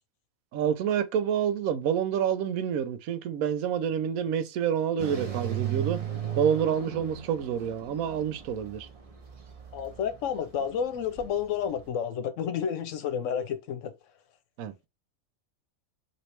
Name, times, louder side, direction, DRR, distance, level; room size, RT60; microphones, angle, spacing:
voice 1, 0.5-6.0 6.4-8.9 14.6-14.9, right 8 dB, 90° right, 1.0 m, -28 dB
sound 1, 5.0-11.9, right 10 dB, 40° right, 0.5 m, -37 dB
voice 2, 9.7-13.9, left 8 dB, 70° left, 0.9 m, -30 dB
3.1 x 2.9 x 2.8 m
omnidirectional pair, 1.4 m